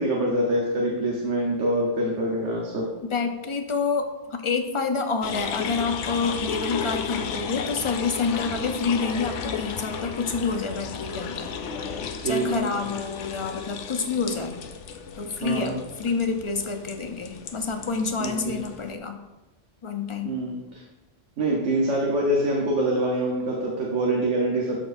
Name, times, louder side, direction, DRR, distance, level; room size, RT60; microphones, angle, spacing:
voice 1, 0.0-2.9 12.2-12.6 15.4-15.8 18.2-18.6 20.2-20.8 21.4-24.8, right 1 dB, 70° right, -2 dB, 1.4 m, -25 dB
voice 2, 3.1-11.5 12.2-14.6 15.2-19.2 19.8-20.4, left 4 dB, 35° left, 5 dB, 0.5 m, -28 dB
sound 1, 5.2-19.0, left 6 dB, 75° left, 0.9 m, -34 dB
13.0 x 4.4 x 2.6 m, 1.1 s
omnidirectional pair, 1.3 m